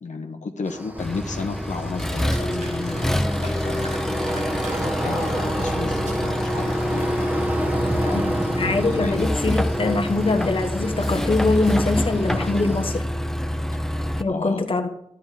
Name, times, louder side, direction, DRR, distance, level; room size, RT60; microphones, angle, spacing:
voice 1, 0.0-4.1 4.8-7.2 8.0-9.3 14.3-14.6, left 4 dB, 70° left, 1.2 m, -33 dB
sound 1, 0.7-13.0, right 1 dB, 15° right, 1.5 m, -30 dB
Accelerating revving vroom, 1.0-14.2, equal, 5° left, 0.7 m, -26 dB
sound 2, 1.7-6.3 6.7-7.1, right 2 dB, 75° right, 6.1 m, -43 dB
voice 2, 8.1-13.1 14.2-14.9, left 3 dB, 45° left, 1.4 m, -23 dB
13.0 x 9.5 x 5.1 m
wide cardioid pair, 115°, 13 cm